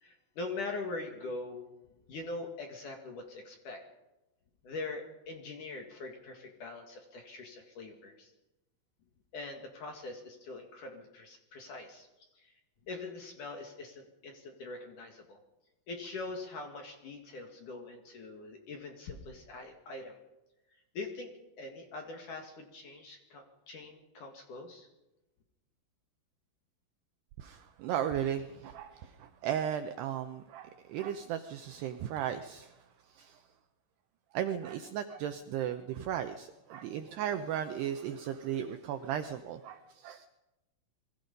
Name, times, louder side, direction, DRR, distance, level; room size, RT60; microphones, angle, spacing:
voice 1, 0.0-1.7 2.1-3.8 4.6-8.3 9.3-12.1 12.3-12.5 12.9-15.4 15.9-20.2 20.9-24.9, left 3 dB, 50° left, 3 dB, 2.8 m, -43 dB
voice 2, 27.4-32.7 33.1-33.4 34.3-40.3, right 9 dB, 80° right, 7 dB, 2.4 m, -36 dB
27.0 x 22.0 x 5.4 m, 1.0 s
omnidirectional pair, 5.7 m